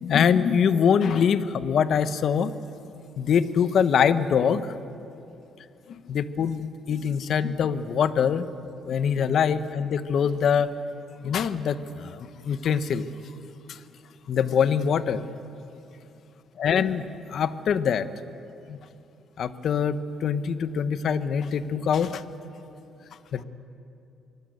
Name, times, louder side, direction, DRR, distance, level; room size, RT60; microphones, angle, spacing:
voice 1, 0.0-2.5 3.2-4.7 5.9-8.5 8.9-10.7 11.2-13.1 13.7-13.8 14.3-15.2 16.6-17.0 17.3-18.1 18.7-18.8 19.4-22.2 23.3-23.4, left 7 dB, 65° left, 12 dB, 1.1 m, -24 dB
25.0 x 21.0 x 8.1 m, 2.7 s
cardioid pair, 90°, 0 cm